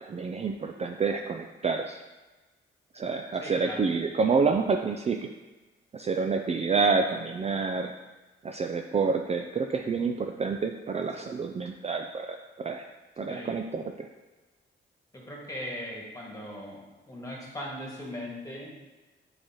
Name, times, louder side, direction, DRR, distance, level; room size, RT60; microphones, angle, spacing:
voice 1, 0.0-2.0 2.9-5.3 5.9-7.9 8.4-12.8 13.2-14.1, right 4 dB, 30° right, 4 dB, 0.4 m, -28 dB
voice 2, 3.4-3.9 13.3-13.6 15.1-18.7, left 1 dB, 15° left, -3 dB, 1.9 m, -39 dB
7.2 x 4.8 x 2.9 m, 1.2 s
cardioid pair, 85°, 21 cm